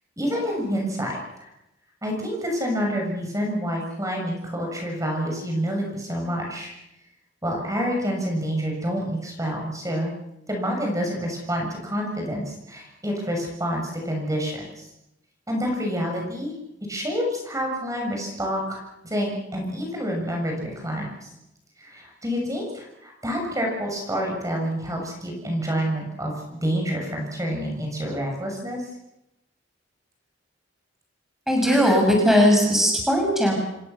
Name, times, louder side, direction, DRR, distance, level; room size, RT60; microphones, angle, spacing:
voice 1, 0.2-1.5 2.0-6.7 7.4-10.1 10.5-14.8 15.5-16.5 16.9-21.1 21.8-28.8, equal, 15° right, 1 dB, 6.8 m, -28 dB
voice 2, 31.5-33.6, equal, ahead, 0 dB, 6.8 m, -18 dB
28.5 x 22.0 x 7.0 m, 0.87 s
head